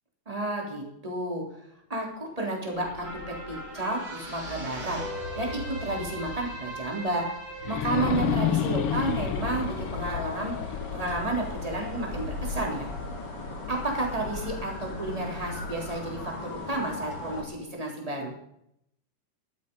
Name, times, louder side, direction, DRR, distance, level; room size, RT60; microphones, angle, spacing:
voice 1, 0.3-1.4 1.9-5.0 5.4-7.3 7.7-12.9 13.7-18.3, right 2 dB, 10° right, -1 dB, 3.3 m, -31 dB
sound 1, 2.7-5.6 6.1-6.2 7.6-12.6, left 9 dB, 90° left, 1.2 m, -32 dB
sound 2, 3.0-9.6 10.1-10.2, right 1 dB, 30° right, 4.3 m, -39 dB
sound 3, 7.9-17.4, left 2 dB, 35° left, 3.0 m, -37 dB
13.5 x 12.0 x 5.5 m, 0.76 s
omnidirectional pair, 3.7 m